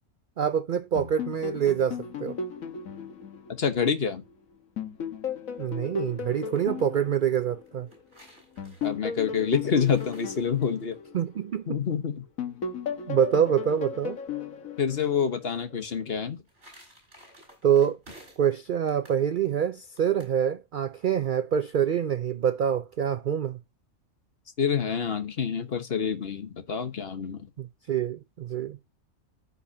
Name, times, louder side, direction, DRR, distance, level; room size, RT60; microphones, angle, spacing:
voice 1, 0.4-2.4 5.6-7.9 11.1-11.8 13.1-14.2 17.6-18.0 18.4-23.6 27.6-28.8, right 8 dB, 75° right, 0.4 m, -26 dB
sound 1, 1.0-4.3 4.8-8.0 8.6-11.9 12.4-15.6, left 6 dB, 70° left, 1.7 m, -36 dB
voice 2, 3.6-4.2 8.8-11.0 11.7-12.2 14.8-16.4 24.6-27.5, left 6 dB, 45° left, 1.2 m, -27 dB
sound 2, 6.3-6.9 7.6-10.9 16.1-18.6 18.9-19.2 20.0-20.4, equal, 45° right, 6.0 m, -53 dB
14.5 x 5.4 x 2.7 m
omnidirectional pair, 1.5 m